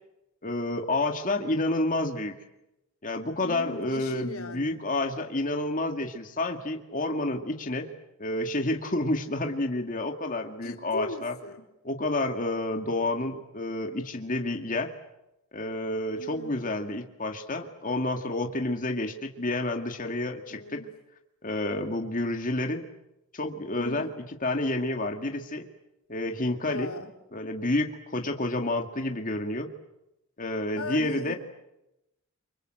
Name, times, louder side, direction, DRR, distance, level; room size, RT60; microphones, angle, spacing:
voice 1, 0.4-2.4 3.0-7.9 8.2-11.3 11.8-14.9 15.5-20.9 21.4-22.9 23.3-24.1 24.4-25.7 26.1-26.9 27.3-29.7 30.4-31.4, left 2 dB, 40° left, 4 dB, 2.1 m, -29 dB
voice 2, 3.4-4.8 10.6-11.6 16.1-16.8 20.5-20.9 23.8-24.1 26.7-27.1 30.8-31.4, left 3 dB, 90° left, 5 dB, 3.2 m, -38 dB
29.0 x 25.0 x 7.8 m, 0.90 s
head